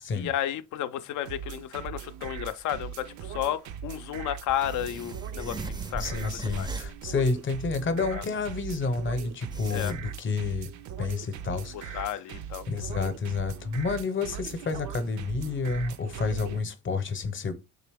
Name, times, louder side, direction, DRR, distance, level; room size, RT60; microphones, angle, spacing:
voice 1, 0.1-6.7 8.1-8.2 9.7-9.9 11.7-12.6, left 11 dB, 75° left, 0.5 m, -33 dB
sound 1, 1.3-16.6, right 9 dB, 70° right, 0.5 m, -40 dB
sound 2, 2.6-2.7 2.9-3.0 4.5-7.0 7.3-7.4 8.7-8.8 9.3-9.9, right 2 dB, 15° right, 0.4 m, -38 dB
voice 2, 6.0-10.7 11.0-12.0 12.7-17.5, left 4 dB, 40° left, 0.7 m, -30 dB
3.9 x 2.9 x 3.3 m
cardioid pair, 90°, 30 cm